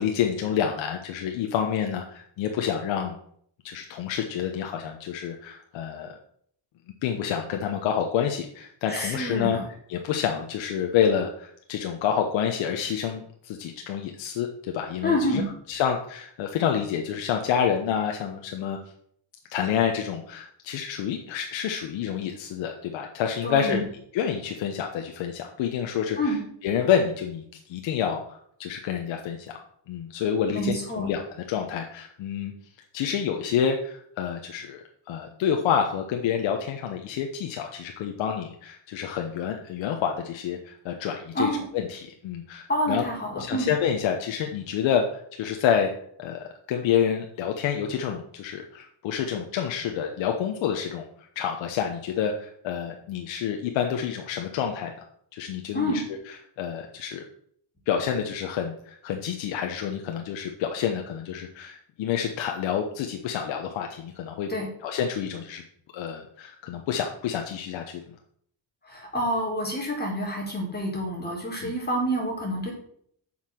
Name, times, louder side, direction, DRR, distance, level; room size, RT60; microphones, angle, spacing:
voice 1, 0.0-3.2 3.6-6.1 7.0-9.6 9.9-15.4 15.7-18.8 19.5-23.8 24.1-26.2 26.6-27.4 27.7-29.6 29.9-31.2 31.5-32.5 32.9-43.0 43.4-45.9 46.2-51.1 51.4-54.9 55.3-56.0 56.6-57.2 57.9-64.5 64.8-65.6 65.9-68.0 71.6-71.7, left 8 dB, 80° left, 3 dB, 1.1 m, -28 dB
voice 2, 8.8-9.6 15.0-15.5 23.4-23.9 26.2-26.4 30.5-31.1 41.3-41.6 42.7-43.7 55.7-56.0 64.5-64.7 68.8-72.7, equal, 20° left, -2 dB, 3.8 m, -28 dB
7.3 x 5.9 x 6.4 m, 0.65 s
cardioid pair, 110°, 45 cm